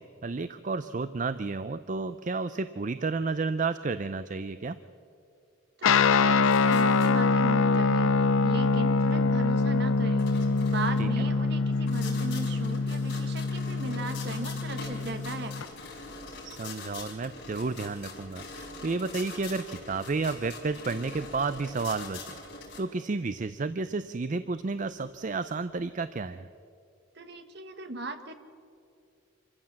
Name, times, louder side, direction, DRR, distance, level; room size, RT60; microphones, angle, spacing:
voice 1, 0.0-4.8 11.0-11.2 16.4-22.3 22.8-26.5, right 3 dB, 40° right, 12 dB, 0.5 m, -31 dB
Guitar, 5.8-15.7, left 4 dB, 85° left, 0.5 m, -25 dB
voice 2, 5.8-10.3 10.6-15.6 27.1-28.3, right 2 dB, 55° right, 7 dB, 1.5 m, -37 dB
sound 1, 6.5-22.8, left 3 dB, 60° left, 5.1 m, -44 dB
26.0 x 15.0 x 7.6 m, 2.5 s
head